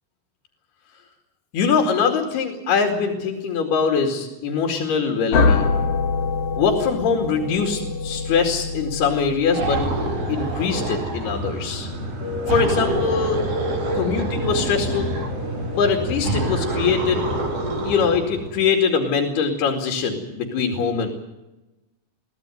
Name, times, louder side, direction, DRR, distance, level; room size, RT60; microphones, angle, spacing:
voice 1, 1.5-5.7 6.6-9.8 10.3-11.9 12.5-13.4 13.9-15.1 15.7-17.3 17.8-21.1, left 5 dB, 80° left, 1 dB, 4.4 m, -22 dB
sound 1, 5.3-10.0, left 4 dB, 60° left, 3.7 m, -24 dB
sound 2, 9.5-11.4 12.5-15.3 16.2-18.2, right 2 dB, 40° right, 4.6 m, -27 dB
sound 3, 9.7-18.7, equal, 80° right, 8.7 m, -29 dB
23.5 x 16.5 x 9.1 m, 1.0 s
omnidirectional pair, 4.5 m